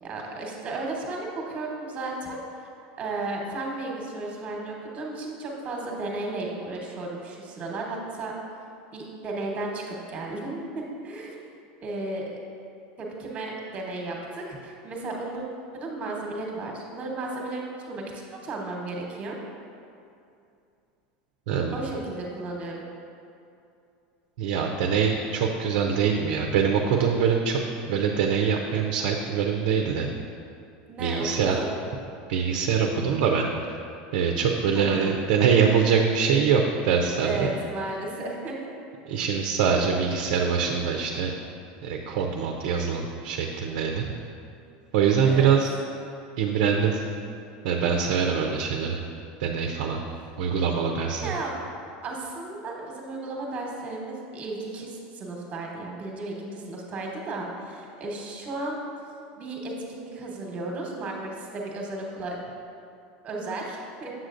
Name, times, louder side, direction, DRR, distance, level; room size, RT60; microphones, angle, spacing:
voice 1, 0.0-2.7 3.0-8.3 8.9-11.3 11.8-12.4 13.0-15.4 15.7-18.0 18.4-19.4 21.7-22.8 30.9-31.8 34.7-35.2 37.2-38.6 45.2-45.5 50.0-50.2 51.2-51.6 52.0-58.8 59.4-62.4 63.2-64.1, right 2 dB, 30° right, -1 dB, 1.1 m, -34 dB
voice 2, 21.5-21.8 24.4-30.1 31.0-31.6 32.3-33.5 34.1-37.5 39.1-41.3 41.8-44.1 44.9-45.7 46.4-47.0 47.6-49.0 49.4-50.0 50.4-51.4, right 6 dB, 75° right, 2 dB, 0.5 m, -24 dB
7.3 x 6.3 x 2.5 m, 2.5 s
supercardioid pair, 130°, 4 cm